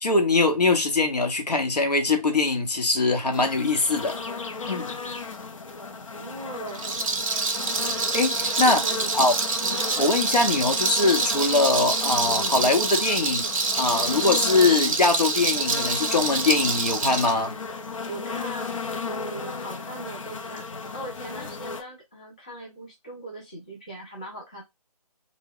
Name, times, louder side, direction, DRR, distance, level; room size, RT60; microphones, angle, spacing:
voice 1, 0.0-4.2 4.7-4.9 8.1-8.8 9.1-9.3 10.0-13.5 13.8-17.5, left 3 dB, 80° left, 0.9 m, -22 dB
sound 1, 3.3-21.8, left 4 dB, 55° left, 0.6 m, -35 dB
voice 2, 6.1-6.8 8.6-9.8 18.0-18.7 19.0-20.7 20.9-24.6, right 2 dB, 10° left, 0.3 m, -39 dB
Rattle, 6.7-17.3, right 4 dB, 55° right, 0.5 m, -26 dB
2.1 x 2.1 x 3.6 m
figure-of-eight pair, 150°, 20 cm